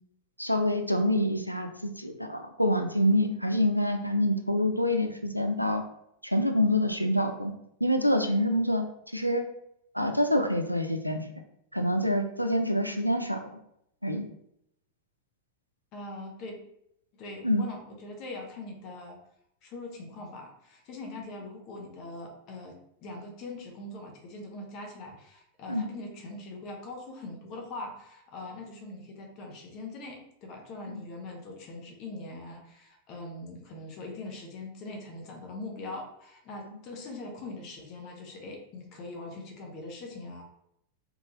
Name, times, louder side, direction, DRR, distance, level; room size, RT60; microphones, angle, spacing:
voice 1, 0.4-5.8 6.2-7.5 7.8-8.8 9.1-9.4 9.9-11.2 11.7-13.6 14.0-14.3 17.4-17.7 25.7-25.9 30.9-31.0, left 1 dB, 90° right, 5 dB, 0.3 m, -26 dB
voice 2, 15.9-16.6 17.1-19.2 19.6-40.4, left 2 dB, 40° left, 2 dB, 0.7 m, -42 dB
3.2 x 2.3 x 2.8 m, 0.75 s
figure-of-eight pair, 90°, 0 cm